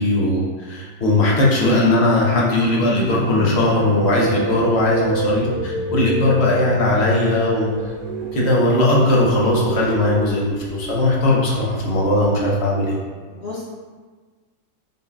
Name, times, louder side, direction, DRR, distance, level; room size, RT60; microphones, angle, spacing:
voice 1, 0.0-7.7 8.3-13.0, left 2 dB, 50° left, -4 dB, 0.8 m, -18 dB
sound 1, 1.1-12.4, right 4 dB, 90° right, 1.3 m, -34 dB
voice 2, 3.2-3.5 13.4-13.6, left 5 dB, 85° left, -6 dB, 0.5 m, -32 dB
sound 2, 3.6-10.3, right 4 dB, 70° right, 0.7 m, -28 dB
5.4 x 3.6 x 2.3 m, 1.4 s
omnidirectional pair, 2.0 m